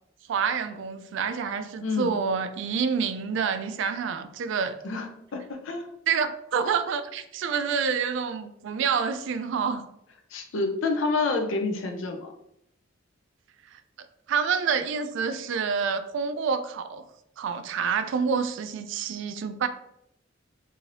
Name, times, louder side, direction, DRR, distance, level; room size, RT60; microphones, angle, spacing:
voice 1, 0.3-4.8 6.1-9.8 13.7-13.8 14.3-17.0 17.4-19.7, right 6 dB, 65° right, 10 dB, 0.3 m, -27 dB
voice 2, 1.8-2.1 4.8-5.9 10.3-12.3, left 3 dB, 70° left, 4 dB, 0.5 m, -28 dB
3.2 x 2.7 x 2.6 m, 0.76 s
head